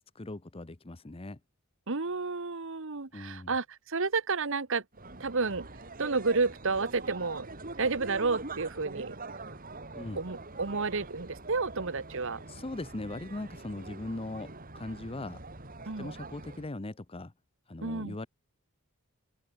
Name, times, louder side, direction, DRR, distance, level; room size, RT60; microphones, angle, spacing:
voice 1, 0.1-1.4 3.1-3.5 9.9-10.2 12.5-15.4 15.8-17.3 17.7-18.3, left 2 dB, 25° left, 0.8 m, -39 dB
voice 2, 1.9-4.8 5.2-5.7 6.0-7.5 7.8-9.2 10.2-12.4 15.9-16.1 17.8-18.2, right 4 dB, 65° right, 1.3 m, -31 dB
sound 1, 4.9-16.7, right 3 dB, 40° right, 4.8 m, -44 dB
open air
head